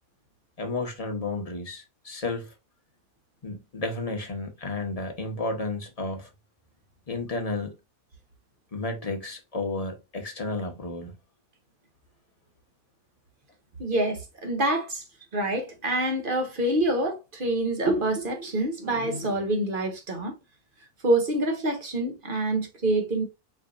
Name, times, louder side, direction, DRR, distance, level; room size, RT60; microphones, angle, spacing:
voice 1, 0.6-2.5 3.4-6.3 7.1-7.8 8.7-11.2, left 2 dB, 30° left, 1.0 m, -32 dB
voice 2, 13.8-15.0 15.3-20.3 21.0-23.2, right 1 dB, 40° right, 1.2 m, -26 dB
4.9 x 3.9 x 2.5 m
omnidirectional pair, 1.6 m